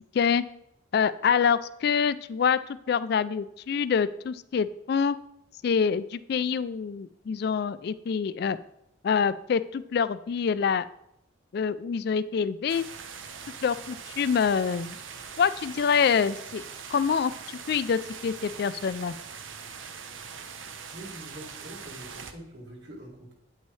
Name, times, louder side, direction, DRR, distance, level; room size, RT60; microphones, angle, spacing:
voice 1, 0.9-2.6 2.9-5.2 5.6-8.6 9.0-10.9 11.5-12.8 13.6-15.0 15.4-16.6 16.9-19.1, left 6 dB, 55° left, 15 dB, 0.3 m, -26 dB
sound 1, 12.7-22.3, right 6 dB, 80° right, 0.8 m, -42 dB
voice 2, 20.9-23.3, right 1 dB, 60° right, -2 dB, 2.3 m, -44 dB
9.3 x 8.2 x 3.2 m, 0.80 s
head